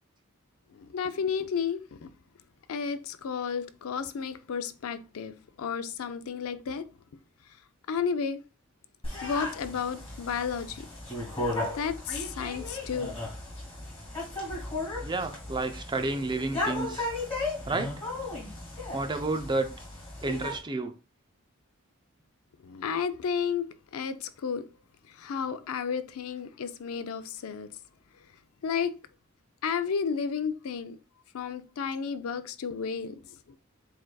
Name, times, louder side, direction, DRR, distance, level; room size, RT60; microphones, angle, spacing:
voice 1, 0.7-2.1 2.7-6.9 7.9-8.4 9.2-10.9 11.7-13.1 22.6-24.6 25.1-27.7 28.6-29.0 29.6-31.0 31.3-33.2, left 6 dB, 80° left, 0.4 m, -32 dB
sound 1, 9.0-20.6, left 2 dB, 25° left, 2.0 m, -35 dB
voice 2, 15.0-17.1 17.7-17.9 18.9-19.7 20.2-20.9, right 2 dB, 20° right, 0.5 m, -30 dB
7.7 x 2.6 x 2.3 m
head